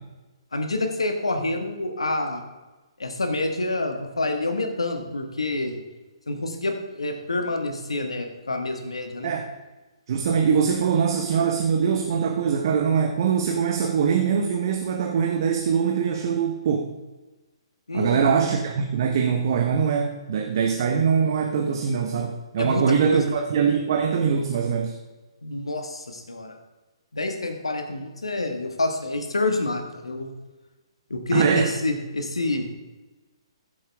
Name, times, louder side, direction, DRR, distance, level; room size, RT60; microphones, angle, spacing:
voice 1, 0.5-2.4 3.0-5.8 6.3-9.3 17.9-18.5 22.6-23.4 25.4-26.6 27.1-30.3 31.1-32.7, left 2 dB, 85° left, 4 dB, 1.8 m, -27 dB
voice 2, 10.1-16.9 17.9-25.0 31.3-31.7, right 6 dB, 50° right, 3 dB, 1.1 m, -23 dB
15.0 x 7.7 x 3.5 m, 1.2 s
figure-of-eight pair, 135°, 3 cm